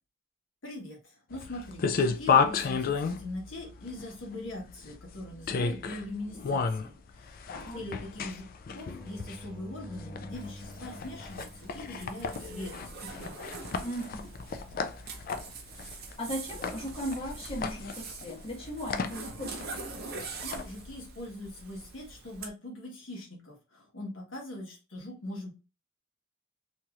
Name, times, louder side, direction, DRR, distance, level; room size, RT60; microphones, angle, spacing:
voice 1, 0.6-7.4 7.7-13.4 20.4-25.5, left 1 dB, 65° left, 1.3 m, -42 dB
sound 1, 1.3-21.0, left 5 dB, 45° left, 0.3 m, -33 dB
voice 2, 7.5-7.8 13.8-14.3 16.2-19.7, equal, 25° left, 1.2 m, -37 dB
sound 2, 8.8-13.5 16.7-17.3, equal, 15° right, 1.0 m, -49 dB
Zipper (clothing), 10.3-22.5, right 3 dB, 50° right, 0.6 m, -44 dB
3.0 x 2.9 x 2.3 m
head